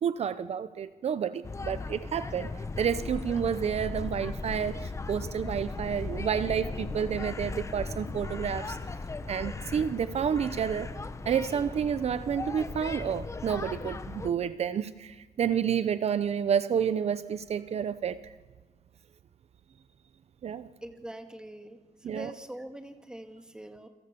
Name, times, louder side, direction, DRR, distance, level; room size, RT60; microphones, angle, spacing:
voice 1, 0.0-2.5 2.8-8.8 9.3-10.9 11.3-18.2 20.4-20.7 22.0-22.3, right 8 dB, 55° right, 13 dB, 0.8 m, -30 dB
sound 1, 1.4-14.3, left 3 dB, 25° left, 1.2 m, -37 dB
voice 2, 20.8-23.9, right 1 dB, 5° right, 6 dB, 2.1 m, -43 dB
29.0 x 24.5 x 6.9 m, 1.3 s
wide cardioid pair, 140°, 13 cm